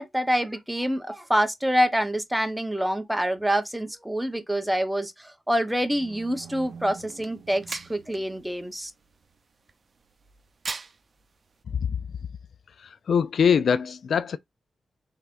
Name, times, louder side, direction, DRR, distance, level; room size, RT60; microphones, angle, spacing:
voice 1, 0.0-8.9, equal, 5° right, 0.9 m, -26 dB
sound 1, 5.7-8.7, right 6 dB, 90° right, 0.7 m, -47 dB
sound 2, 6.2-11.6, right 4 dB, 55° right, 0.6 m, -43 dB
voice 2, 13.1-14.4, left 7 dB, 75° left, 0.3 m, -22 dB
3.4 x 3.3 x 2.5 m
cardioid pair, 60°, 0 cm